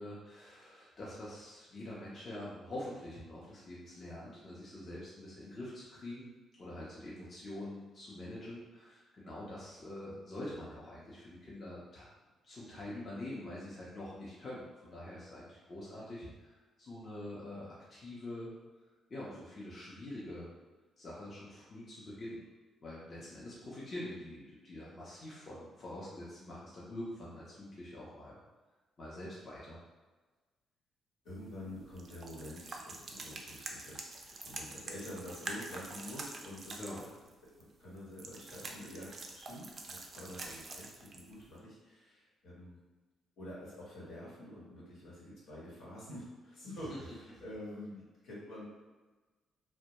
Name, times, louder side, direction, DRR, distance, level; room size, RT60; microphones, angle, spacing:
voice 1, 0.0-6.3 6.6-12.1 12.4-18.5 19.1-20.5 21.0-22.4 22.8-28.4 29.0-29.8 36.8-37.0 46.9-47.0, left 1 dB, 40° left, -7 dB, 0.6 m, -45 dB
voice 2, 31.2-37.0 37.4-42.8 43.4-48.7, left 1 dB, 75° left, -7 dB, 1.0 m, -48 dB
sound 1, 31.3-41.6, right 3 dB, 45° right, 0.3 m, -46 dB
2.2 x 2.0 x 2.8 m, 1.3 s
cardioid pair, 90°, 0 cm